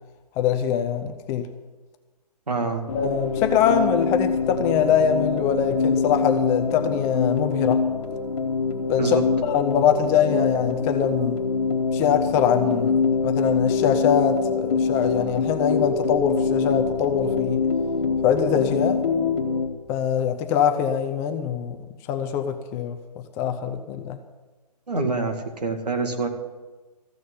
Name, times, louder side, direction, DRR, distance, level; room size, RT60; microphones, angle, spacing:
voice 1, 0.4-1.5 2.9-7.8 8.9-9.2 9.5-11.4 11.9-17.6 18.2-19.0 19.9-21.8 22.1-23.0 23.4-24.2, left 8 dB, 15° left, 6 dB, 0.5 m, -23 dB
voice 2, 2.5-2.9 9.0-9.2 24.9-26.3, right 3 dB, 75° right, 4 dB, 2.2 m, -25 dB
sound 1, 2.9-19.7, left 5 dB, 45° left, 1.6 m, -24 dB
14.5 x 6.3 x 9.5 m, 1.2 s
figure-of-eight pair, 135°, 21 cm